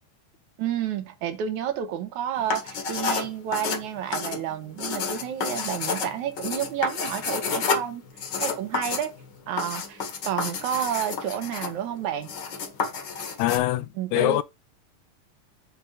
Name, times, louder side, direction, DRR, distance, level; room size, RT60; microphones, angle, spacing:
voice 1, 0.6-8.0 8.4-9.2 9.5-12.3 13.9-14.4, right 10 dB, 75° right, 2.5 m, -30 dB
sound 1, 2.4-13.6, left 5 dB, 45° left, 1.6 m, -30 dB
voice 2, 13.4-13.9 14.1-14.4, left 15 dB, 80° left, 2.0 m, -22 dB
8.1 x 3.8 x 5.5 m
omnidirectional pair, 3.5 m